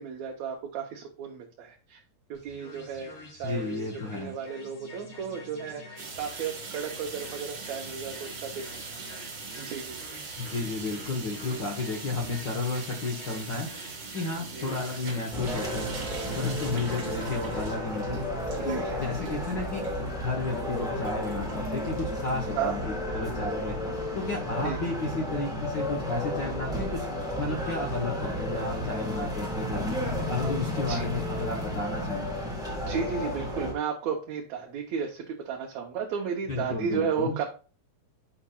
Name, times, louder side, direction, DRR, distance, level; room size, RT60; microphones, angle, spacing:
voice 1, 0.0-2.0 2.3-9.3 9.6-10.1 14.5-14.8 16.8-17.1 18.6-19.4 22.6-22.8 24.6-24.8 30.9-31.1 32.9-37.4, right 7 dB, 75° right, 0 dB, 2.1 m, -34 dB
sound 1, 2.3-17.3, left 1 dB, 85° left, 4.9 m, -47 dB
voice 2, 3.4-4.3 10.4-13.7 14.1-15.9 16.3-18.2 18.6-19.8 20.2-23.7 24.1-27.1 27.3-30.0 30.3-32.3 36.5-37.4, left 3 dB, 55° left, 0 dB, 1.4 m, -32 dB
sound 2, 6.0-22.8, right 4 dB, 45° right, 1.7 m, -42 dB
sound 3, 15.3-33.7, left 1 dB, ahead, 0.9 m, -32 dB
10.0 x 5.1 x 2.3 m, 0.36 s
omnidirectional pair, 3.4 m